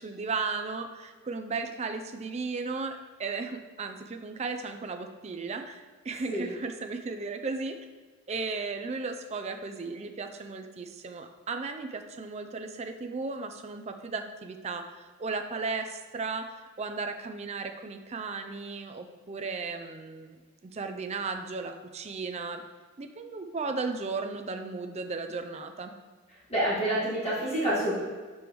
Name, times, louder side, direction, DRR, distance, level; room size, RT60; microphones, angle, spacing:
voice 1, 0.0-7.8 8.3-20.4 20.6-22.6 23.0-25.9, right 4 dB, 30° right, 6 dB, 0.4 m, -35 dB
voice 2, 26.5-28.0, right 1 dB, 30° left, -10 dB, 1.9 m, -27 dB
6.9 x 4.8 x 3.1 m, 1.4 s
head